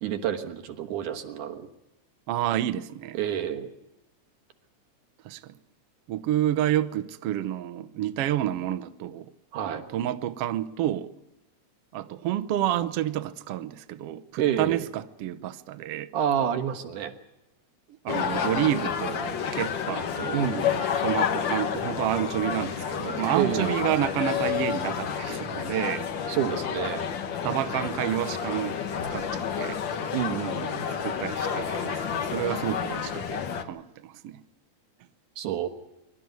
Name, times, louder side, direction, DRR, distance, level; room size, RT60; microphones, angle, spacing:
voice 1, 0.0-1.7 3.1-3.7 9.5-9.9 14.4-14.9 16.1-17.1 20.3-20.8 23.3-23.8 26.3-27.1 30.1-30.9 35.4-35.7, right 9 dB, 85° right, 2.9 m, -28 dB
voice 2, 2.3-3.2 5.2-5.6 6.1-9.3 9.6-11.1 11.9-16.1 18.0-20.4 21.0-26.1 27.1-27.2 27.4-28.8 29.1-29.8 31.0-34.4, right 12 dB, 70° right, 1.5 m, -29 dB
sound 1, 18.1-33.6, left 7 dB, 55° left, 1.4 m, -30 dB
23.5 x 12.5 x 9.4 m
omnidirectional pair, 3.5 m